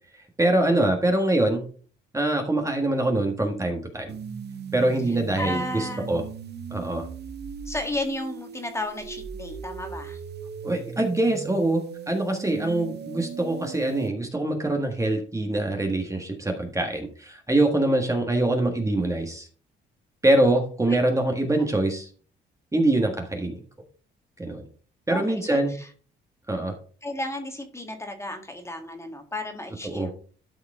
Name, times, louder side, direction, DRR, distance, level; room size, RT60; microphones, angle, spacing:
voice 1, 0.4-1.6 2.1-4.1 4.7-6.2 6.7-7.1 10.6-19.5 20.2-22.1 22.7-23.6 24.4-24.6 25.1-25.7 26.5-26.7 29.8-30.1, right 1 dB, 15° right, 3 dB, 1.5 m, -24 dB
sound 1, 4.1-14.1, right 6 dB, 55° right, 1.0 m, -38 dB
voice 2, 5.1-6.1 7.6-10.2 12.7-13.0 18.4-18.5 25.1-25.9 27.0-30.1, left 1 dB, 15° left, 4 dB, 1.8 m, -33 dB
12.5 x 4.7 x 3.7 m, 0.42 s
cardioid pair, 90°, 20 cm